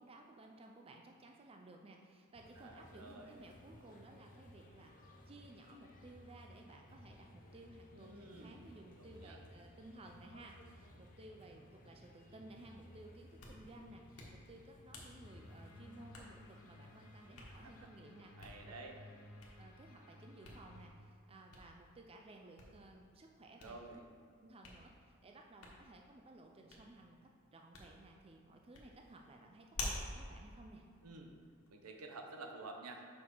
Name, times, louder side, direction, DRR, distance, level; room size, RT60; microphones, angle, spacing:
voice 1, 0.0-18.3 18.7-18.8 19.6-24.0 24.4-27.2 27.5-30.8, right 2 dB, 25° right, 2 dB, 0.5 m, -57 dB
sound 1, 2.3-17.9, left 1 dB, 35° left, 0.7 m, -59 dB
voice 2, 2.6-3.3 7.9-8.7 9.0-9.4 17.6-17.9 18.4-19.0 23.6-24.0 31.0-31.3 31.7-33.1, right 3 dB, 80° right, 3 dB, 0.9 m, -51 dB
Hands, 13.2-31.7, left 2 dB, 65° left, 1.4 m, -52 dB
sound 2, 15.2-20.9, left 1 dB, 90° left, 1.0 m, -58 dB
6.1 x 5.9 x 4.6 m, 2.4 s
head